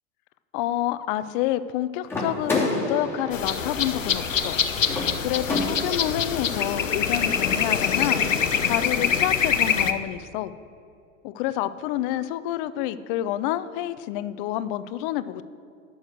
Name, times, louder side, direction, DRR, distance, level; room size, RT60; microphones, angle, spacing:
voice 1, 0.5-4.6 5.2-10.5 11.2-15.4, left 13 dB, 45° left, 15 dB, 0.6 m, -28 dB
sound 1, 2.1-6.2, left 2 dB, 5° left, 3.1 m, -30 dB
sound 2, 3.3-9.9, left 7 dB, 80° left, 0.8 m, -24 dB
12.0 x 6.4 x 7.8 m, 2.5 s
figure-of-eight pair, 85°, 38 cm